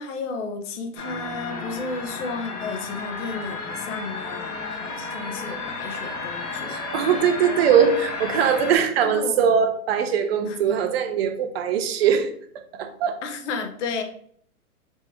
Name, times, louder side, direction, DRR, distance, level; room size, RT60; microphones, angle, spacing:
voice 1, 0.0-6.9 9.0-9.4 10.5-10.8 13.2-14.0, left 4 dB, 55° left, 5 dB, 0.9 m, -33 dB
sound 1, 1.0-8.8, left 3 dB, 85° left, 1.6 m, -32 dB
voice 2, 6.7-12.3 12.7-13.2, right 7 dB, 45° right, 7 dB, 0.6 m, -21 dB
4.4 x 2.9 x 3.4 m, 0.62 s
hypercardioid pair, 130°, 45 cm